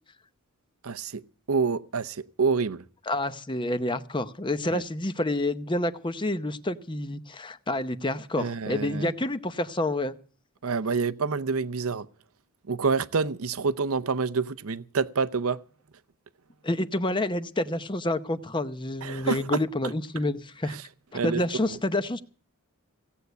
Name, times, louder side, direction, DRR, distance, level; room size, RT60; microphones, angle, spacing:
voice 1, 0.8-1.2 1.5-2.8 4.7-4.8 8.4-9.1 10.6-12.1 12.7-15.6 19.0-19.6 20.7-20.8 21.1-21.4 21.7-21.8, right 5 dB, 75° right, 0.7 m, -27 dB
voice 2, 3.1-10.1 16.6-20.8 21.1-22.2, left 1 dB, 20° left, 0.7 m, -28 dB
17.0 x 8.1 x 8.0 m
head